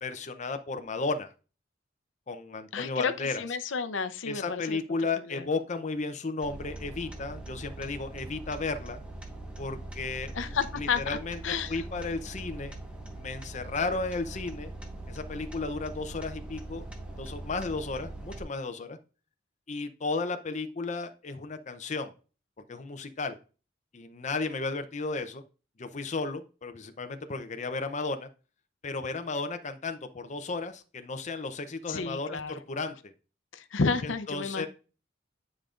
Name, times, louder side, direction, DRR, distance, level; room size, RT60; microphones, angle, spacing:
voice 1, 0.0-1.3 2.3-3.4 4.2-9.0 9.6-11.4 11.7-12.7 13.1-14.7 15.1-16.9 17.2-19.0 19.7-22.1 22.7-23.4 23.9-25.4 25.8-28.3 28.8-33.1 34.3-34.7, left 3 dB, 40° left, 8 dB, 0.6 m, -34 dB
voice 2, 2.7-4.8 5.3-5.4 10.3-11.2 11.4-11.8 31.9-32.9 33.5-34.7, left 5 dB, 75° left, 10 dB, 0.6 m, -31 dB
sound 1, 6.4-18.4, right 1 dB, 5° right, 1.2 m, -42 dB
9.8 x 5.0 x 2.5 m, 0.34 s
head